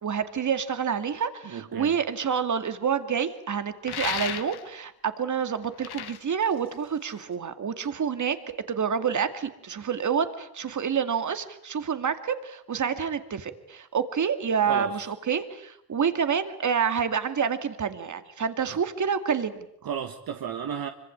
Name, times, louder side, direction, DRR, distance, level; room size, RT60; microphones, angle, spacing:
voice 1, 0.0-19.7, right 7 dB, 50° right, 2.4 m, -28 dB
voice 2, 1.4-1.9 14.6-15.0 18.7-18.8 19.8-20.9, right 8 dB, 65° right, 1.7 m, -34 dB
sound 1, 3.8-4.8 5.6-7.3, left 10 dB, 80° left, 1.7 m, -34 dB
26.0 x 25.0 x 8.8 m
cardioid pair, 125°, 38 cm